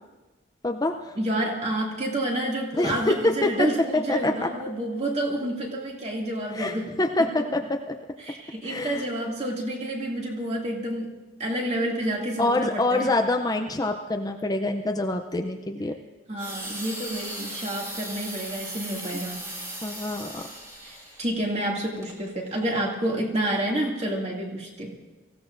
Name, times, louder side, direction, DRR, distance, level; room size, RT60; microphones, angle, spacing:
voice 1, 0.6-1.1 2.7-3.5 4.1-4.5 6.5-7.6 8.6-9.0 12.4-15.9 19.8-20.5, left 2 dB, 20° left, 4 dB, 0.5 m, -25 dB
voice 2, 1.1-6.9 7.4-7.5 8.2-11.1 11.4-13.1 16.3-19.5 20.8-24.9, right 1 dB, 35° right, -2 dB, 2.4 m, -29 dB
sound 1, 16.4-21.3 22.0-22.1, right 1 dB, 15° right, 2.2 m, -37 dB
25.0 x 15.5 x 2.6 m, 1.2 s
head